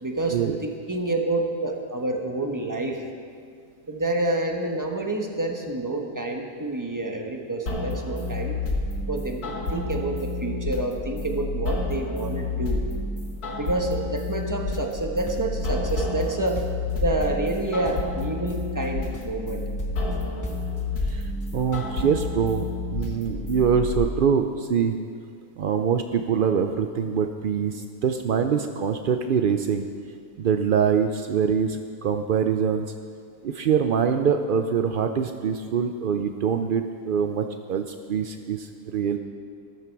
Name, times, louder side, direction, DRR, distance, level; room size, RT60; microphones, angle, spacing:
voice 1, 0.0-3.0 3.9-8.6 9.1-12.8 13.6-16.6 17.0-19.6, right 2 dB, 15° right, 2 dB, 1.2 m, -28 dB
sound 1, 7.7-23.9, left 2 dB, 85° left, 2.1 m, -30 dB
sound 2, 15.0-16.3 16.6-17.6 17.8-18.2 18.5-18.9 19.1-19.5 19.8-20.2 20.4-22.0, left 1 dB, 15° left, 0.7 m, -39 dB
voice 2, 21.1-24.9 25.6-29.9 30.4-32.9 33.4-39.2, right 7 dB, 75° right, 7 dB, 0.4 m, -24 dB
13.5 x 13.5 x 4.7 m, 2.1 s
omnidirectional pair, 1.6 m